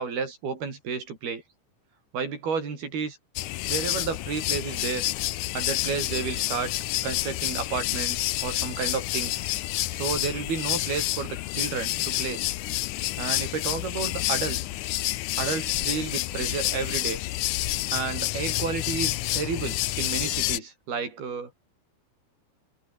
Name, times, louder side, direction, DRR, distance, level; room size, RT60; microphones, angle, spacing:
voice 1, 0.0-1.4 2.1-3.2 3.7-5.1 5.5-6.7 7.0-9.4 9.9-12.5 13.2-14.6 15.4-17.2 17.9-21.5, right 5 dB, 80° right, 7.4 m, -31 dB
sound 1, 3.4-20.6, left 17 dB, 75° left, 1.9 m, -29 dB
omnidirectional pair, 4.3 m